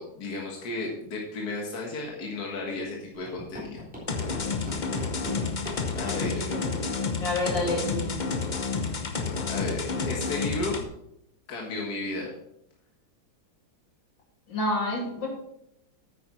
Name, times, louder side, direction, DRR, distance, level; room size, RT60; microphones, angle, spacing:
voice 1, 0.0-3.8 6.0-6.4 9.5-10.8 11.5-12.3, left 2 dB, 55° left, -1 dB, 2.1 m, -33 dB
sound 1, 3.1-6.3 7.1-7.2 7.5-7.7 7.9-8.1 8.5-8.8, equal, 5° right, 3.4 m, -38 dB
sound 2, 4.1-10.8, left 4 dB, 40° left, 0.6 m, -30 dB
voice 2, 6.1-6.9 7.2-8.3 14.5-15.3, left 1 dB, 80° left, -2 dB, 3.7 m, -30 dB
9.5 x 9.2 x 4.3 m, 0.79 s
omnidirectional pair, 2.0 m